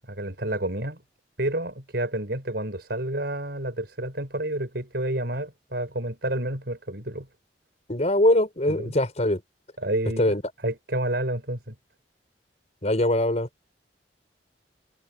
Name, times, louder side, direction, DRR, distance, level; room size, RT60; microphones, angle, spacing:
voice 1, 0.1-1.0 1.4-7.3 8.7-8.9 9.8-10.3 10.6-11.7, right 1 dB, 65° right, 5.8 m, -29 dB
voice 2, 7.9-9.4 10.2-10.4 12.8-13.5, left 1 dB, 40° left, 4.5 m, -22 dB
head